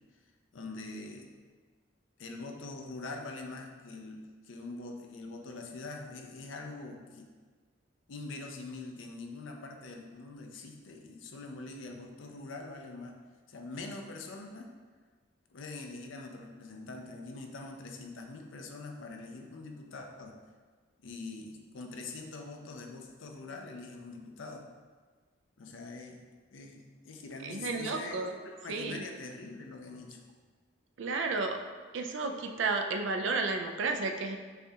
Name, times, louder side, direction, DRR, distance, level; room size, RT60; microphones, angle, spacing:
voice 1, 0.5-1.3 2.2-7.3 8.1-13.1 13.5-14.7 15.5-20.4 21.0-24.7 25.6-26.2 26.5-30.2, left 3 dB, 80° left, 2 dB, 0.5 m, -44 dB
voice 2, 27.4-28.3 28.7-29.0 31.0-31.6 31.9-34.4, right 3 dB, 70° right, 5 dB, 0.4 m, -32 dB
6.5 x 2.3 x 2.8 m, 1.5 s
head